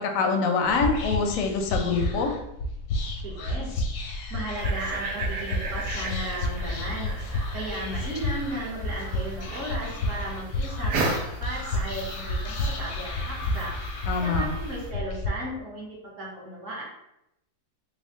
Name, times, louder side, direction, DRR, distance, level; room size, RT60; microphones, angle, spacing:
voice 1, 0.0-2.3 14.1-14.4, left 4 dB, 65° left, 3 dB, 0.8 m, -25 dB
Whispering, 0.6-15.3, left 1 dB, 85° left, 1.3 m, -31 dB
voice 2, 3.2-3.7 4.3-16.8, right 1 dB, 55° right, -4 dB, 1.2 m, -36 dB
sound 1, 4.5-14.9, right 2 dB, 80° right, 1.3 m, -35 dB
3.5 x 2.1 x 3.4 m, 0.83 s
omnidirectional pair, 1.8 m